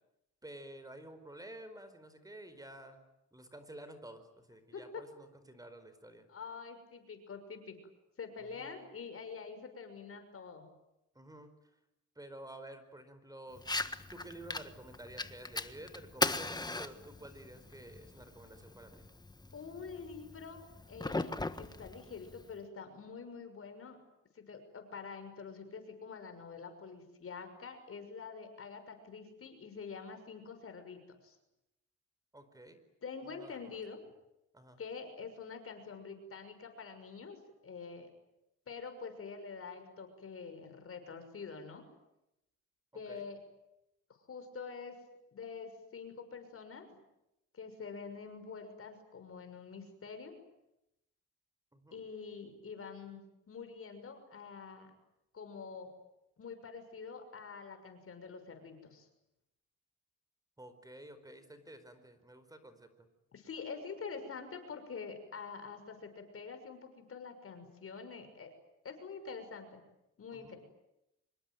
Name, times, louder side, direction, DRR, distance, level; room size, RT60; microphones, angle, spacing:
voice 1, 0.4-3.0 3.3-6.3 8.4-8.8 11.1-11.5 12.1-13.6 14.1-19.1 32.3-32.8 33.2-33.8 34.5-34.8 42.9-43.2 51.7-52.0 60.6-63.1 70.3-70.6, right 1 dB, 10° right, 10 dB, 4.7 m, -51 dB
voice 2, 4.7-5.0 6.3-7.8 8.2-10.7 19.5-24.0 24.3-31.4 33.0-34.0 34.8-38.1 38.7-41.8 42.9-43.4 44.3-45.0 45.3-46.9 47.5-50.3 51.9-54.9 55.3-55.9 56.4-59.1 63.3-68.5 68.8-69.8 70.2-70.6, left 5 dB, 50° left, 8 dB, 6.3 m, -46 dB
Fire, 13.6-22.6, left 2 dB, 15° left, 1.5 m, -39 dB
26.0 x 22.5 x 9.3 m, 0.88 s
cardioid pair, 90°, 30 cm